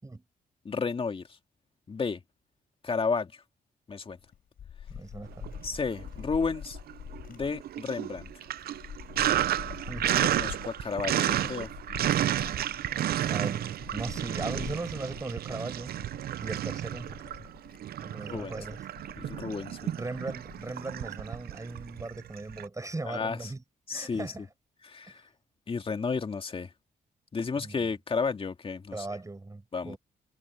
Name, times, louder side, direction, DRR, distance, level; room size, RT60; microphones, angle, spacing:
voice 1, 0.6-1.4 1.9-2.2 2.8-3.4 3.9-4.2 5.6-6.8 7.3-8.3 10.0-11.7 18.3-18.6 19.2-20.0 23.0-23.5 23.9-24.3 24.8-25.3 25.7-26.7 27.3-29.2 29.7-30.0, left 5 dB, 35° left, 2.2 m, -32 dB
sound 1, 4.1-21.0, left 9 dB, 65° left, 4.9 m, -46 dB
voice 2, 4.9-5.5 9.9-10.1 13.2-15.9 16.4-17.5 18.0-18.8 19.9-23.6 23.9-24.4 25.1-25.2 27.6-27.9 28.9-30.0, right 2 dB, 20° right, 6.0 m, -38 dB
Sink (filling or washing), 5.3-6.2 6.5-22.7, right 11 dB, 70° right, 0.6 m, -32 dB
cardioid pair, 90°, 16 cm